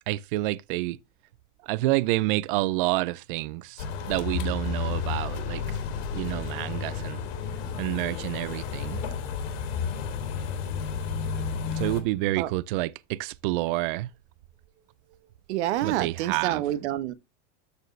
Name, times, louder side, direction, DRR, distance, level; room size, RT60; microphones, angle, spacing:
voice 1, 0.1-1.0 1.6-5.8 6.1-7.2 7.8-9.0 11.7-14.1 15.8-16.6, right 18 dB, 45° right, 0.4 m, -28 dB
sound 1, 3.8-12.0, left 6 dB, 60° left, 2.9 m, -32 dB
voice 2, 15.5-17.1, right 13 dB, 65° right, 1.1 m, -28 dB
13.0 x 4.7 x 3.2 m
supercardioid pair, 170°, 37 cm